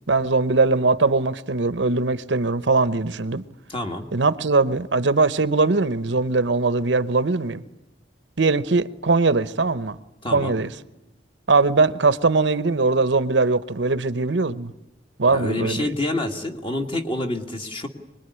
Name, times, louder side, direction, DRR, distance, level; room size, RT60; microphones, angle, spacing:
voice 1, 0.1-3.4 4.1-7.6 8.4-10.0 10.3-10.7 11.5-14.7 15.2-15.9, right 3 dB, 80° right, 0.9 m, -21 dB
voice 2, 3.7-4.1 10.2-10.6 15.3-17.9, left 1 dB, 30° left, 2.1 m, -27 dB
24.5 x 21.0 x 9.9 m
head